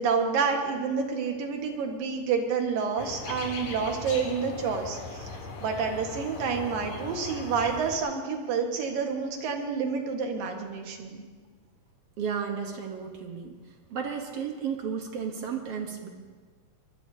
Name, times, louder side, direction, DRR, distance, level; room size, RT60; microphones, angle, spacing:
voice 1, 0.0-5.3 5.6-11.2, right 5 dB, 85° right, 3 dB, 3.3 m, -29 dB
sound 1, 3.0-8.0, left 3 dB, 65° left, 3.1 m, -39 dB
voice 2, 12.2-13.6 13.9-16.1, right 7 dB, 60° right, 3 dB, 1.7 m, -33 dB
24.5 x 20.5 x 2.8 m, 1.5 s
omnidirectional pair, 3.9 m